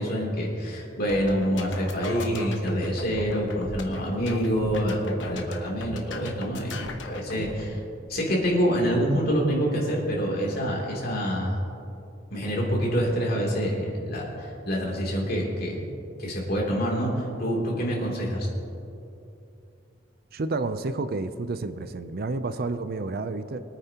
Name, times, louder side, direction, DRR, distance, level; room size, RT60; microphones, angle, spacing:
voice 1, 0.0-7.8 8.1-11.6 12.3-15.8 16.2-18.5, equal, 55° left, -3 dB, 3.0 m, -26 dB
sound 1, 1.0-7.7, left 2 dB, 75° left, 1.1 m, -38 dB
voice 2, 20.3-23.6, right 3 dB, 55° right, 11 dB, 0.5 m, -30 dB
23.5 x 9.1 x 2.9 m, 2.7 s
head